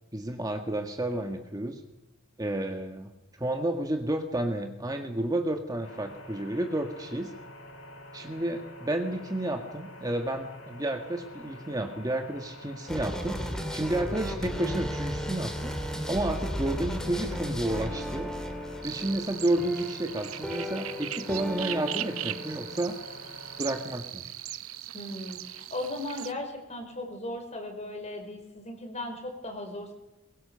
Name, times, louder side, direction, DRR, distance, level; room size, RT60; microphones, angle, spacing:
voice 1, 0.1-1.8 2.4-3.1 3.4-7.3 8.1-13.4 13.7-15.7 16.1-18.3 18.8-22.9 23.6-24.2, right 1 dB, 20° right, 4 dB, 1.7 m, -31 dB
sound 1, 5.8-23.9, left 1 dB, 65° left, 7.6 m, -47 dB
sound 2, 12.9-22.8, equal, 5° left, 2.8 m, -35 dB
sound 3, 18.8-26.3, right 13 dB, 90° right, 0.9 m, -39 dB
voice 2, 24.9-29.9, left 1 dB, 30° left, 5 dB, 4.8 m, -37 dB
22.5 x 22.5 x 6.9 m, 0.97 s
head